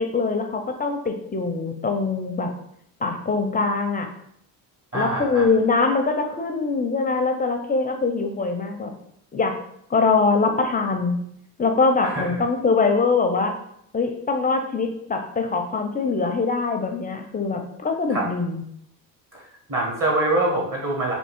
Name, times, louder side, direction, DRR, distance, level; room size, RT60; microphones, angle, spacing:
voice 1, 0.0-2.5 3.0-4.1 4.9-8.9 9.3-9.6 9.9-11.2 11.6-13.6 13.9-18.6, left 4 dB, 20° left, 5 dB, 0.6 m, -23 dB
voice 2, 4.9-5.5 12.0-12.4 18.1-18.3 19.3-21.1, right 2 dB, 35° right, -2 dB, 1.4 m, -25 dB
3.6 x 2.7 x 4.5 m, 0.72 s
supercardioid pair, 85°, 41 cm